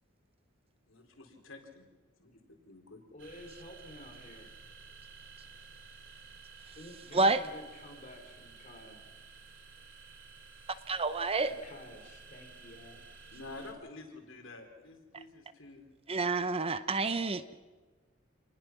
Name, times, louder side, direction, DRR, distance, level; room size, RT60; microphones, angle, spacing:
voice 1, 0.9-1.8 2.2-2.3 2.7-3.0 13.3-15.8, left 2 dB, 75° left, 3 dB, 3.9 m, -49 dB
voice 2, 3.1-4.5 6.8-9.0 11.5-13.1, left 1 dB, 35° left, 3 dB, 3.7 m, -51 dB
sound 1, 3.2-13.7, right 4 dB, 65° right, 3.2 m, -53 dB
voice 3, 10.9-11.5 16.1-17.4, right 3 dB, 30° right, 13 dB, 0.8 m, -28 dB
28.0 x 20.0 x 6.0 m, 1.3 s
head